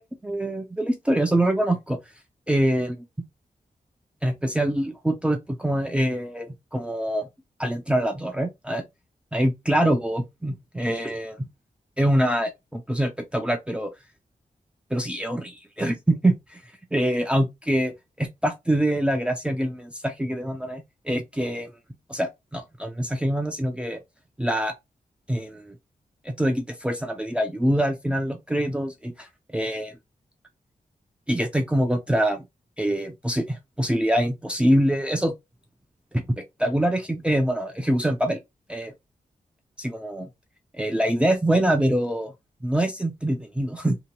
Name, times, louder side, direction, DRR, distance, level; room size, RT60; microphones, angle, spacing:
voice 1, 0.0-2.0 2.5-3.1 4.2-7.3 7.6-8.8 9.3-11.5 12.0-13.9 14.9-16.6 16.9-21.7 22.1-24.0 24.4-24.7 25.3-25.8 26.2-29.3 29.5-30.0 31.3-32.4 32.8-35.3 36.1-38.4 38.7-38.9 39.8-40.3 40.7-42.3 42.6-44.0, right 1 dB, 10° right, 0.4 m, -25 dB
2.8 x 2.2 x 2.8 m
wide cardioid pair, 160°, 14 cm